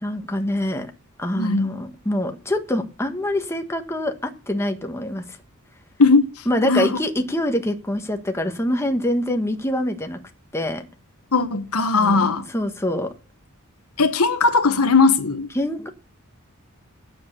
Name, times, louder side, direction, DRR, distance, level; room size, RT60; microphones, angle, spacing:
voice 1, 0.0-0.9 1.2-5.2 6.5-10.2 10.5-10.8 12.0-13.1 15.5-15.9, left 1 dB, 10° left, 1.4 m, -25 dB
voice 2, 1.3-1.7 6.0-6.3 6.6-7.0 11.3-12.4 14.0-15.5, left 4 dB, 80° left, 1.3 m, -18 dB
9.6 x 8.1 x 6.6 m
head